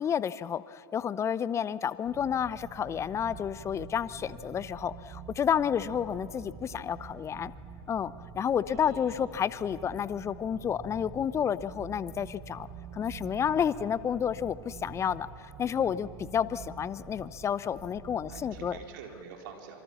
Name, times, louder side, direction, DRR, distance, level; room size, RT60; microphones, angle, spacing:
voice 1, 0.0-7.5 7.9-12.7 12.9-15.3 15.6-18.8, left 8 dB, 20° left, 18 dB, 0.6 m, -30 dB
sound 1, 2.0-18.8, right 5 dB, 30° right, 4.7 m, -47 dB
voice 2, 8.7-9.3 18.3-19.8, right 7 dB, 55° right, 2 dB, 4.1 m, -47 dB
26.0 x 24.0 x 7.1 m, 2.6 s
figure-of-eight pair, 90°, 13 cm